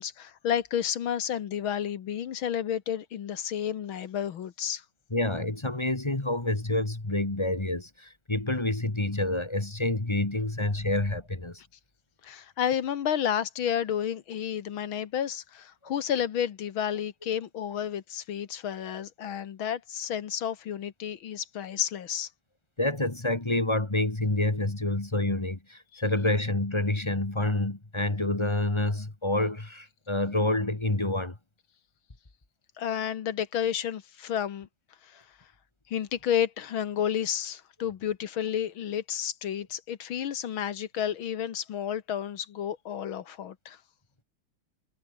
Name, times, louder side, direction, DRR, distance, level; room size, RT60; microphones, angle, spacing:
voice 1, 0.0-4.8 12.2-22.3 25.9-26.0 32.8-34.7 35.0-35.2 35.9-43.8, left 9 dB, 70° left, 2.0 m, -31 dB
voice 2, 5.1-11.6 22.8-31.4, left 2 dB, 15° left, 1.7 m, -28 dB
omnidirectional pair, 2.4 m